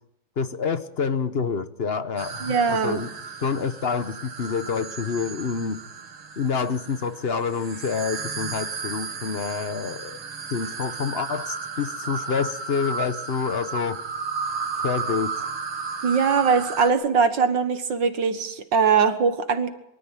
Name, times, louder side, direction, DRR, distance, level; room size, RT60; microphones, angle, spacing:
voice 1, 0.4-3.1 3.4-5.8 6.4-10.2 10.5-14.0 14.8-15.5, left 5 dB, 45° left, 11 dB, 0.8 m, -27 dB
sound 1, 2.2-16.9, right 5 dB, 85° right, 2.9 m, -34 dB
voice 2, 2.4-3.0 16.0-19.7, right 5 dB, 60° right, 9 dB, 2.0 m, -21 dB
24.5 x 13.5 x 9.1 m, 0.83 s
omnidirectional pair, 2.3 m